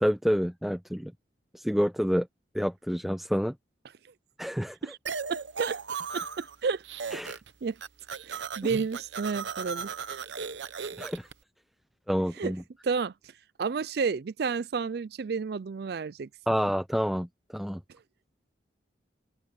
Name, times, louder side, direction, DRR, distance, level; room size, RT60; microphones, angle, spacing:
voice 1, 0.0-1.1 1.5-2.3 2.5-3.5 4.4-4.8 7.1-7.4 11.0-11.3 12.1-12.6 16.5-17.8, equal, ahead, 0.7 m, -28 dB
voice 2, 4.8-5.8 6.1-6.8 7.6-7.8 8.2-9.9 12.4-12.5 12.8-13.1 13.6-16.3, right 5 dB, 55° right, 0.4 m, -31 dB
sound 1, 5.1-6.6 6.8-7.5 7.8-11.3, right 5 dB, 70° right, 0.9 m, -36 dB
open air
head